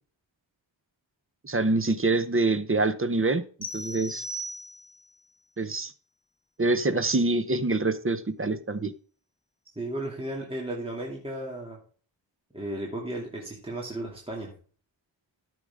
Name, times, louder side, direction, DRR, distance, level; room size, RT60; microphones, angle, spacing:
voice 1, 1.4-3.4 3.7-4.2 5.6-5.9 6.6-8.9, right 2 dB, 30° right, 12 dB, 0.9 m, -25 dB
sound 1, 3.6-5.1, equal, 15° left, 5.1 m, -37 dB
voice 2, 9.8-11.8 12.5-14.5, right 1 dB, 10° right, -2 dB, 2.6 m, -34 dB
13.5 x 6.9 x 3.6 m, 0.41 s
wide cardioid pair, 115°, 46 cm